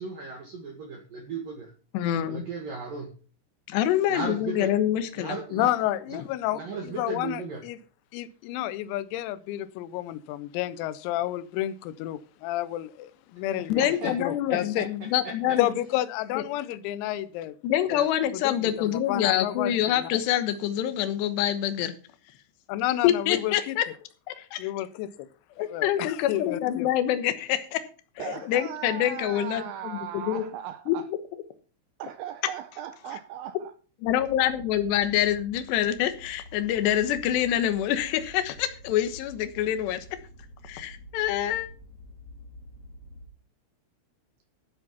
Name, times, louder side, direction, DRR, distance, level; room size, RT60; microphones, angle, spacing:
voice 1, 0.0-1.7 2.2-3.1 4.1-4.7 5.2-5.7 6.1-6.2 6.5-7.6 13.8-14.1 14.8-14.9 15.2-15.6, right 4 dB, 55° right, 2.7 m, -35 dB
voice 2, 1.9-2.4 3.7-5.4 13.7-15.7 17.6-21.9 23.0-23.8 24.3-24.7 25.6-27.8 28.5-30.4 30.9-31.2 34.0-40.0 40.6-41.7, left 11 dB, 70° left, 2.9 m, -26 dB
voice 3, 5.5-7.8 8.1-14.9 15.6-17.6 17.9-18.1 18.3-20.2 22.7-23.8 24.6-25.3 25.7-26.9 28.2-28.4, left 14 dB, 90° left, 3.5 m, -31 dB
voice 4, 28.2-31.1 32.0-33.7, right 11 dB, 85° right, 2.5 m, -38 dB
sound 1, 34.0-43.3, equal, 45° left, 2.0 m, -48 dB
13.0 x 7.7 x 5.7 m
omnidirectional pair, 6.0 m